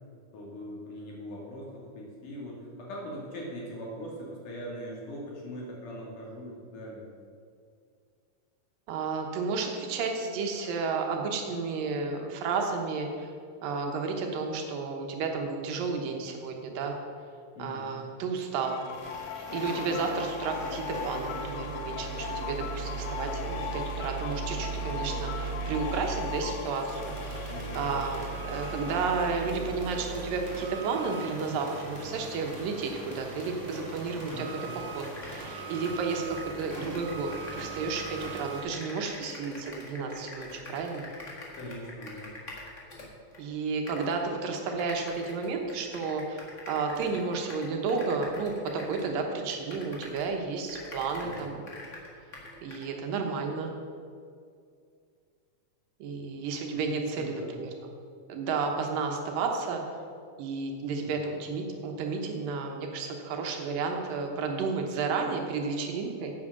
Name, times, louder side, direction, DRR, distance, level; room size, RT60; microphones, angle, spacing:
voice 1, 0.3-7.1 17.5-17.9 23.4-23.7 27.5-27.8 34.3-34.6 41.6-42.4 51.2-51.5 56.9-57.5 61.0-61.2, equal, 65° left, -3 dB, 3.6 m, -41 dB
voice 2, 8.9-13.3 13.6-16.9 17.6-18.8 19.3-34.5 34.7-41.1 43.4-51.6 52.6-53.7 56.0-57.9 58.3-59.8 60.4-66.3, right 4 dB, 75° right, 3 dB, 2.7 m, -32 dB
sound 1, 18.6-29.3, left 7 dB, 80° left, 1.5 m, -38 dB
sound 2, 18.9-38.6, right 5 dB, 15° right, 2.3 m, -39 dB
sound 3, 34.6-34.7 35.0-37.7 38.0-43.4 43.9-44.2 44.7-50.4 50.7-52.9, left 2 dB, 35° left, 1.2 m, -45 dB
9.8 x 8.2 x 6.6 m, 2.3 s
omnidirectional pair, 4.1 m